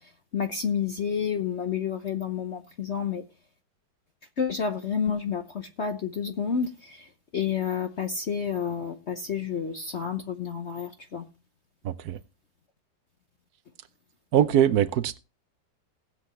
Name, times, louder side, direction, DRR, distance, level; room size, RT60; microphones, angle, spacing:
voice 1, 0.3-3.2 4.4-7.1 7.3-11.2, left 7 dB, 50° left, 0.9 m, -30 dB
voice 2, 11.8-12.2 14.3-15.2, right 10 dB, 65° right, 1.0 m, -22 dB
19.0 x 7.9 x 3.0 m
omnidirectional pair, 2.1 m